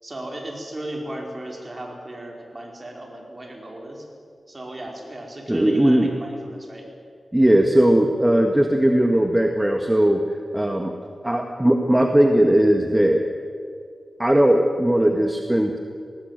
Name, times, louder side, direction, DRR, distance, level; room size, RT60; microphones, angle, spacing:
voice 1, 0.0-4.0 4.5-6.9, right 1 dB, 30° right, 0 dB, 4.8 m, -35 dB
voice 2, 5.5-6.1 7.3-10.2 10.5-10.9 11.2-13.2 14.2-15.8, right 1 dB, 10° right, 4 dB, 1.5 m, -18 dB
19.5 x 18.5 x 9.2 m, 2.3 s
wide cardioid pair, 90°, 0 cm